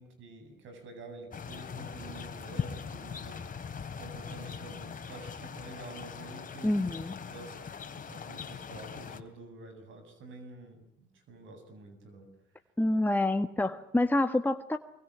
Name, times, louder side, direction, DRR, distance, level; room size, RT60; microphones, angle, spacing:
voice 1, 0.0-3.4 3.9-6.7 7.3-12.3, right 3 dB, 80° right, 8 dB, 8.0 m, -48 dB
sound 1, 1.3-9.2, left 6 dB, 45° left, 2.8 m, -41 dB
voice 2, 6.6-7.2 12.8-14.8, left 1 dB, 10° left, 7 dB, 1.3 m, -27 dB
25.0 x 23.5 x 9.8 m, 0.74 s
cardioid pair, 90°, 20 cm